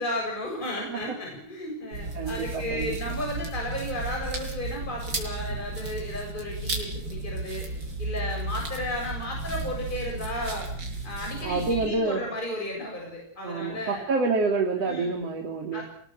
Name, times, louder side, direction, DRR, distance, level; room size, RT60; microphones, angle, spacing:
voice 1, 0.0-7.7 8.0-10.7 11.0-14.1 14.8-15.2 15.7-15.8, left 1 dB, 15° left, 0 dB, 7.3 m, -34 dB
sound 1, 1.9-11.9, right 2 dB, 30° right, 6.2 m, -34 dB
voice 2, 2.1-3.0 11.4-12.2 13.4-15.8, right 3 dB, 50° right, 2 dB, 3.5 m, -27 dB
27.0 x 20.5 x 7.7 m, 0.63 s
omnidirectional pair, 4.0 m